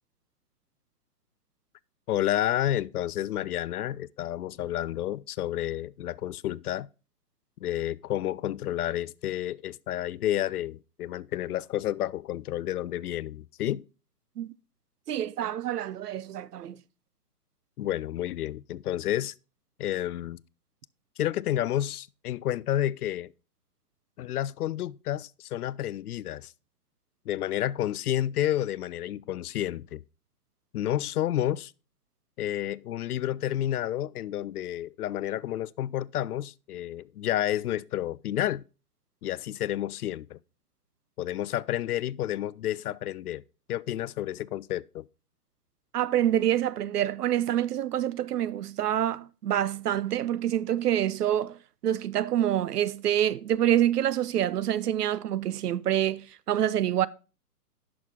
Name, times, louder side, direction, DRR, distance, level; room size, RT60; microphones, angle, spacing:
voice 1, 2.1-6.9 7.6-13.8 17.8-19.3 19.8-20.4 21.2-23.3 24.2-26.5 27.3-30.0 30.7-31.7 32.4-38.6 39.2-40.4 41.2-43.4 43.7-45.0, left 12 dB, 70° left, 0.5 m, -30 dB
voice 2, 15.1-16.8 45.9-51.6 51.8-57.1, right 11 dB, 80° right, 0.7 m, -26 dB
10.5 x 6.2 x 3.6 m
hypercardioid pair, 145°, 47 cm